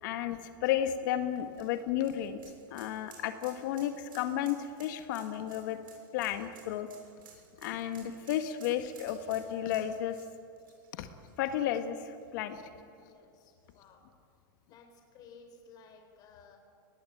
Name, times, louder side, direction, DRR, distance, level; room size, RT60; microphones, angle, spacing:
voice 1, 0.0-2.4 2.7-5.8 6.1-6.9 7.6-10.1 10.9-11.1 11.4-12.6, left 11 dB, 65° left, 8 dB, 1.6 m, -33 dB
sound 1, 1.0-11.8 12.1-12.2 13.7-13.8, right 7 dB, 85° right, 7.6 m, -56 dB
voice 2, 12.8-14.1 14.6-16.6, left 5 dB, 35° left, 4 dB, 4.1 m, -56 dB
24.0 x 19.0 x 8.6 m, 2.4 s
supercardioid pair, 140°, 11 cm